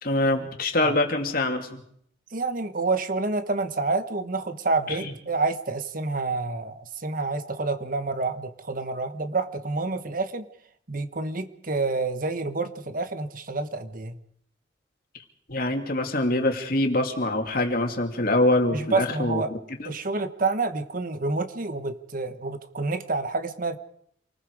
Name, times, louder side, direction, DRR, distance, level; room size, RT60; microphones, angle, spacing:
voice 1, 0.0-1.8 4.9-5.1 15.5-19.9, left 1 dB, 50° left, 4 dB, 2.8 m, -25 dB
voice 2, 2.3-10.4 10.9-14.2 18.7-19.5 19.8-23.8, right 3 dB, 45° right, 10 dB, 1.2 m, -28 dB
28.0 x 20.0 x 4.9 m, 0.66 s
head